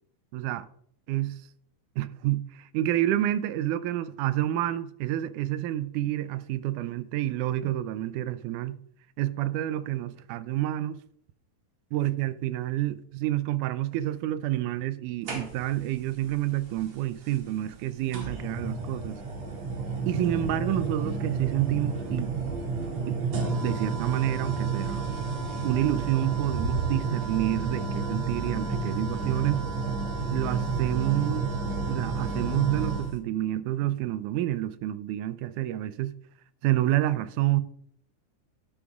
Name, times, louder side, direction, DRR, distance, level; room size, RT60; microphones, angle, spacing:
voice 1, 0.3-0.7 1.1-1.4 2.0-8.8 9.2-11.0 11.9-19.2 20.1-22.3 23.1-23.2 23.6-25.0 25.6-29.6 30.3-31.5 31.9-36.1 36.6-37.6, right 14 dB, 85° right, 2.1 m, -28 dB
sound 1, 15.3-15.9 17.2-17.3 18.1-33.1, right 4 dB, 60° right, 3.2 m, -30 dB
12.5 x 8.2 x 2.4 m
omnidirectional pair, 3.6 m